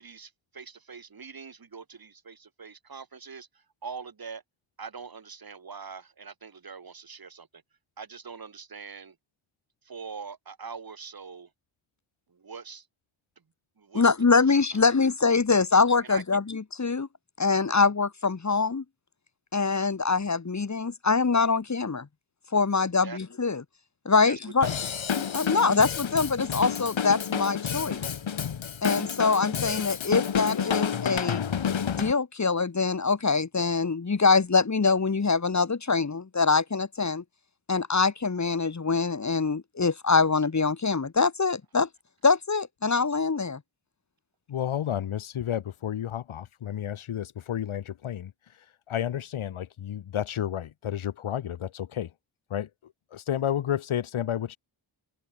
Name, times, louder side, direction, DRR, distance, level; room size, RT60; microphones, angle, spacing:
voice 1, 0.0-3.5 3.8-4.4 4.8-7.5 8.0-9.1 9.8-11.5 12.3-12.9 13.8-14.1 14.5-14.9 15.6-15.7 16.0-16.2 23.0-23.2 24.2-24.7, right 5 dB, 45° right, 5.0 m, -43 dB
voice 2, 13.9-17.1 17.4-18.8 19.5-22.1 22.5-23.6 24.0-24.7 25.1-28.0 28.8-31.4 32.0-37.2 37.7-41.9 42.2-43.6, left 4 dB, 35° left, 3.1 m, -24 dB
Drum kit / Drum, 24.6-32.1, left 7 dB, 70° left, 3.9 m, -29 dB
voice 3, 44.5-48.3 48.9-52.1 52.5-52.7 53.1-54.6, left 10 dB, 85° left, 1.5 m, -31 dB
open air
wide cardioid pair, 120°, 48 cm